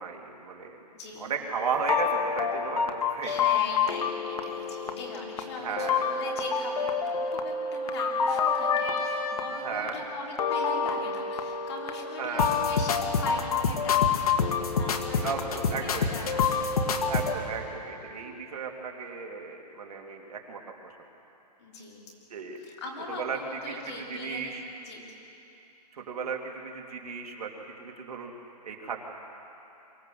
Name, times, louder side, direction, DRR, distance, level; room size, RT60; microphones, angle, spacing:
voice 1, 0.0-0.8 1.2-3.3 5.6-6.1 9.6-10.0 12.2-12.5 15.2-16.1 17.0-20.9 22.3-22.6 23.1-24.7 25.9-27.5 27.8-28.3 28.6-29.0, right 5 dB, 60° right, 1 dB, 2.7 m, -35 dB
voice 2, 0.9-1.3 3.2-15.6 15.9-16.7 21.6-22.0 22.6-25.0, left 3 dB, 40° left, -2 dB, 3.7 m, -41 dB
sound 1, 1.6-17.3, left 5 dB, 60° left, 1.7 m, -28 dB
23.5 x 16.5 x 7.7 m, 2.9 s
hypercardioid pair, 175°, 21 cm